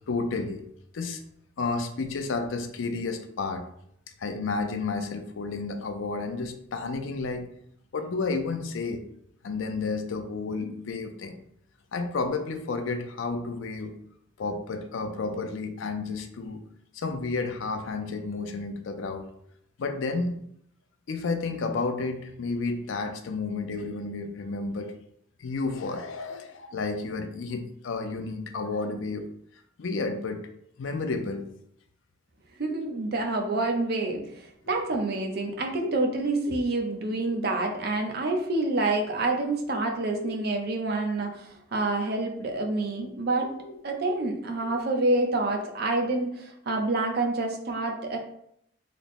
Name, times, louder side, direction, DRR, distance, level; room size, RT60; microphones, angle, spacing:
voice 1, 0.1-0.6 0.9-1.2 1.6-3.7 4.2-7.5 7.9-9.0 9.4-11.4 11.9-14.0 14.4-16.6 16.9-19.2 19.8-20.3 21.1-24.9 25.4-29.3 29.8-30.4 30.8-31.4 32.7-32.8 34.0-34.1 34.7-34.8 35.8-36.0 36.5-36.6 39.7-39.8 40.2-40.4 43.4-43.8, left 3 dB, 90° left, 7 dB, 0.5 m, -31 dB
voice 2, 32.6-43.5 43.8-48.2, right 2 dB, 55° right, 3 dB, 0.6 m, -27 dB
3.3 x 2.0 x 4.1 m, 0.71 s
head